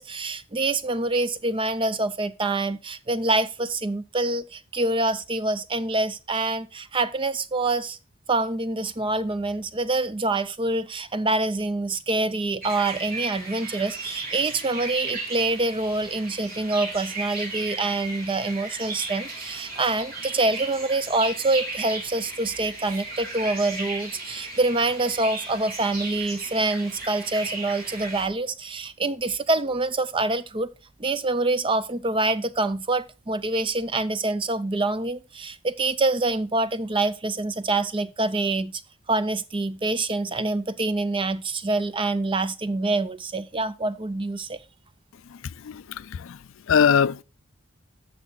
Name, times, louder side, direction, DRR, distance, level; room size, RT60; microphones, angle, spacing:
voice 1, 0.0-8.0 8.3-30.7 31.0-38.8 39.1-44.6, right 2 dB, 25° right, 0.5 m, -26 dB
sound 1, 12.6-28.3, right 2 dB, 45° right, 3.6 m, -35 dB
voice 2, 45.3-47.2, left 7 dB, 65° left, 0.4 m, -23 dB
11.0 x 6.7 x 3.9 m
head